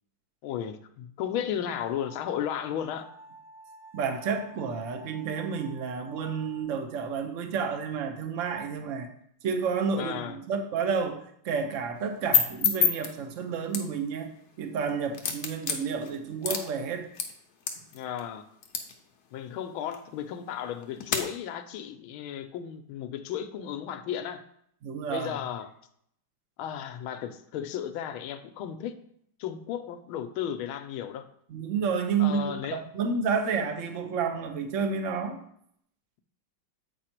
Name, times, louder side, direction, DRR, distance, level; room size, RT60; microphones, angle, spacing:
voice 1, 0.4-3.1 9.9-10.4 17.9-18.5 19.3-24.4 25.1-25.7 26.6-29.0 29.4-31.2 32.2-32.8, left 9 dB, 80° left, 1.4 m, -34 dB
sound 1, 1.6-6.6, right 2 dB, 85° right, 0.4 m, -50 dB
voice 2, 3.9-9.1 9.4-14.3 14.6-17.1 24.8-25.3 31.5-35.4, right 6 dB, 55° right, 0.9 m, -30 dB
sound 2, 12.0-21.2, left 7 dB, 55° left, 1.2 m, -32 dB
8.2 x 4.8 x 4.4 m
omnidirectional pair, 2.4 m